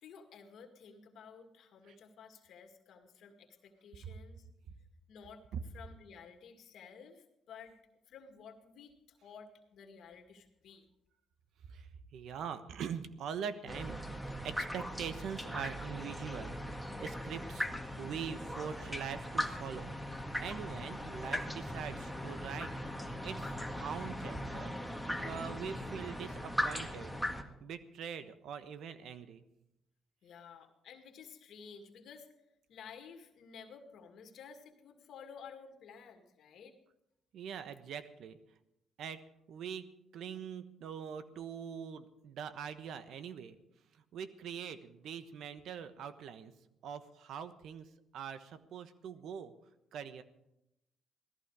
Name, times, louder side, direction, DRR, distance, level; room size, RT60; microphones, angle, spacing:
voice 1, 0.0-4.5 5.1-5.4 5.7-7.8 8.1-10.9 30.2-32.3 32.7-36.7, left 6 dB, 70° left, 4 dB, 2.0 m, -53 dB
voice 2, 11.6-14.0 14.4-16.5 17.0-17.7 18.0-19.9 20.3-22.7 23.2-23.6 23.8-24.7 25.0-27.2 27.6-29.4 37.3-38.4 39.0-39.2 39.5-39.9 40.1-43.6 44.1-46.5 46.8-47.9 48.1-49.5 49.9-50.2, right 7 dB, 75° right, 12 dB, 1.1 m, -43 dB
sound 1, 13.7-27.4, equal, ahead, 1.9 m, -39 dB
17.0 x 14.0 x 4.8 m, 0.85 s
cardioid pair, 90°, 0 cm